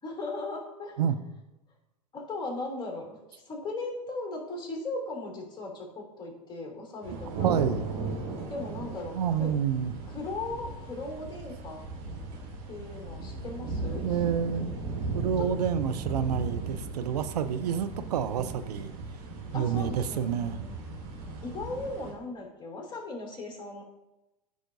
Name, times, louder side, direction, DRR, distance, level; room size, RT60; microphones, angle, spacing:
voice 1, 0.0-1.0 2.1-7.6 8.5-9.6 10.1-11.8 12.7-14.2 15.4-15.5 19.5-20.7 21.4-23.8, left 2 dB, 20° left, -1 dB, 2.8 m, -38 dB
sound 1, 7.0-22.1, right 3 dB, 60° right, 2.8 m, -36 dB
voice 2, 7.4-7.9 9.1-9.9 14.0-14.7 15.1-18.9 19.5-20.6, right 8 dB, 80° right, 11 dB, 0.6 m, -28 dB
13.0 x 5.0 x 2.7 m, 0.98 s
hypercardioid pair, 100°, 20 cm